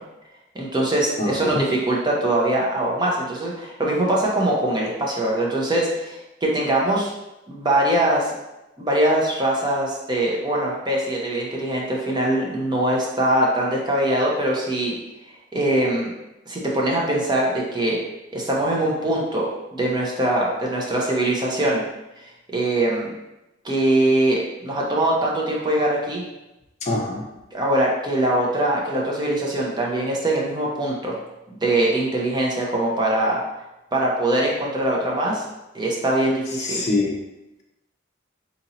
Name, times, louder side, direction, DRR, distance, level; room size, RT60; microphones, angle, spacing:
voice 1, 0.5-7.1 7.5-8.3 8.8-14.9 15.5-16.1 16.5-18.0 18.3-21.8 22.2-22.3 22.5-23.1 23.6-26.2 27.5-31.2 31.5-33.4 33.9-35.4 35.7-36.9, right 1 dB, 20° right, -3 dB, 0.6 m, -22 dB
voice 2, 1.2-1.6 26.8-27.2 36.6-37.1, left 2 dB, 35° left, -1 dB, 0.6 m, -24 dB
2.8 x 2.6 x 4.0 m, 0.96 s
head